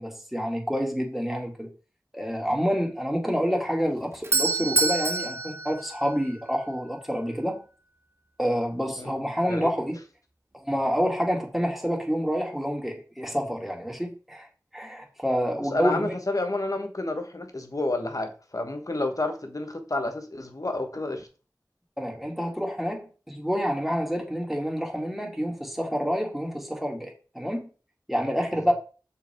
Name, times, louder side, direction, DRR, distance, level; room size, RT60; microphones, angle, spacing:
voice 1, 0.0-1.7 2.1-7.6 8.4-10.0 10.5-14.5 14.7-16.2 22.0-27.7 28.1-28.7, equal, 5° right, 1 dB, 2.4 m, -28 dB
Doorbell, 3.9-6.7, right 3 dB, 40° right, 1.0 m, -27 dB
voice 2, 15.7-21.3 28.6-28.7, left 2 dB, 55° left, 6 dB, 1.3 m, -30 dB
6.7 x 5.7 x 4.5 m, 0.36 s
wide cardioid pair, 40°, 7 cm